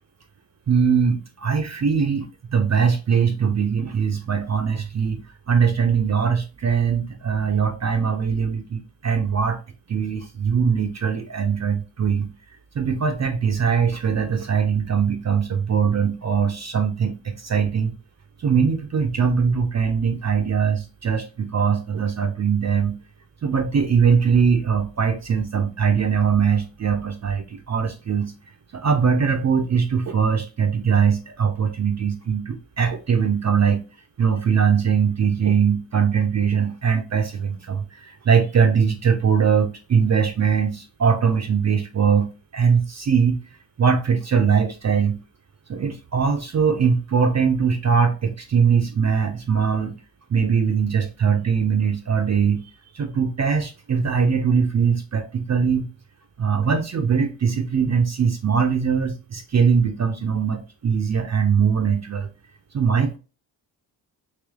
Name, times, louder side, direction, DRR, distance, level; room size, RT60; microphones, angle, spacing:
voice 1, 0.7-2.3 2.5-5.2 5.5-9.6 9.9-12.3 12.8-17.9 18.4-23.0 23.4-28.3 28.7-33.8 34.2-42.3 42.5-43.4 43.8-45.2 45.7-49.9 50.3-52.6 52.9-55.9 56.4-62.3 62.7-63.2, right 6 dB, 35° right, 0.7 m, -21 dB
3.4 x 3.0 x 3.4 m
supercardioid pair, 50°, 47 cm